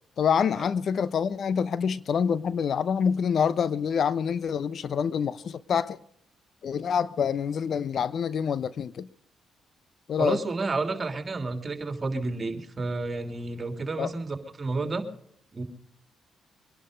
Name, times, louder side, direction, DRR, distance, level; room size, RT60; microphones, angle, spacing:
voice 1, 0.2-6.0 6.6-9.1 10.1-10.4 14.0-14.1, left 7 dB, 60° left, 0.8 m, -26 dB
voice 2, 10.2-15.0 15.5-15.6, right 3 dB, 35° right, 3.1 m, -30 dB
23.5 x 11.0 x 5.2 m
supercardioid pair, 60°, 0 cm